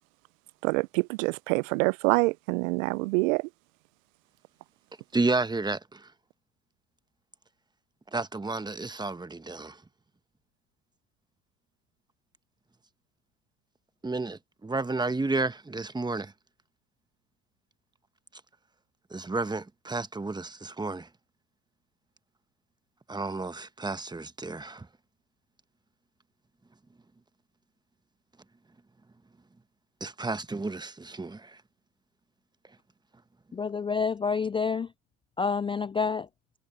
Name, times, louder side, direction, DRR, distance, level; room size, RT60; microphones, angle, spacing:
voice 1, 0.6-3.5, right 27 dB, 75° right, 0.6 m, -26 dB
voice 2, 5.1-6.0 8.1-9.8 14.0-16.3 19.1-21.1 23.1-24.9 30.0-31.6, right 3 dB, 10° right, 1.2 m, -31 dB
voice 3, 33.5-34.9 35.4-36.3, left 5 dB, 15° left, 0.4 m, -28 dB
hypercardioid pair, 80°, 41 cm